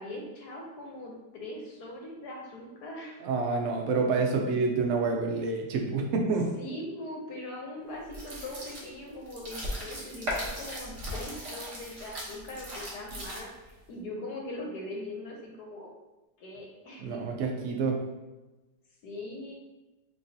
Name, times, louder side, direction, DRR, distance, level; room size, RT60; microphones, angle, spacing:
voice 1, 0.0-3.2 3.8-3.9 6.2-6.3 6.6-15.9 16.4-17.2 19.0-19.5, left 1 dB, 70° left, -1 dB, 1.1 m, -41 dB
voice 2, 3.2-6.5 17.0-18.0, right 4 dB, 80° right, 1 dB, 0.7 m, -28 dB
sound 1, 8.1-13.7, equal, 50° right, 1.1 m, -38 dB
4.0 x 2.9 x 2.6 m, 1.1 s
omnidirectional pair, 2.0 m